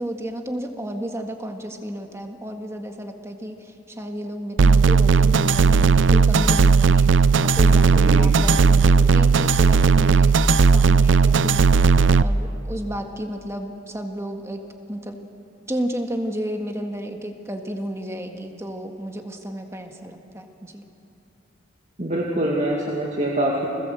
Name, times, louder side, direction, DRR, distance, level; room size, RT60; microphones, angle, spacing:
voice 1, 0.0-11.7 12.1-14.6 14.9-15.2 15.7-20.9, equal, 15° right, 4 dB, 1.8 m, -32 dB
sound 1, 4.6-12.2, right 4 dB, 85° right, 0.5 m, -16 dB
voice 2, 7.9-8.3 22.0-23.7, right 1 dB, 40° right, -2 dB, 2.2 m, -24 dB
29.5 x 20.0 x 7.9 m, 2.7 s
head